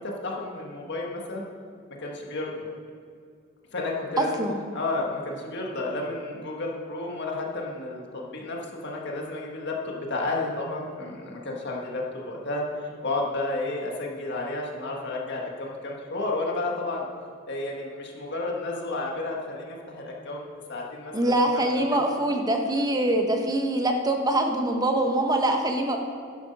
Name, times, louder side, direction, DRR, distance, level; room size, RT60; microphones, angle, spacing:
voice 1, 0.0-1.4 2.0-2.6 3.7-4.5 4.7-17.1 17.5-21.6, left 2 dB, 55° left, -1 dB, 1.7 m, -32 dB
voice 2, 4.2-4.6 21.1-26.0, right 1 dB, 20° right, 3 dB, 1.1 m, -24 dB
11.5 x 8.3 x 5.4 m, 2.3 s
head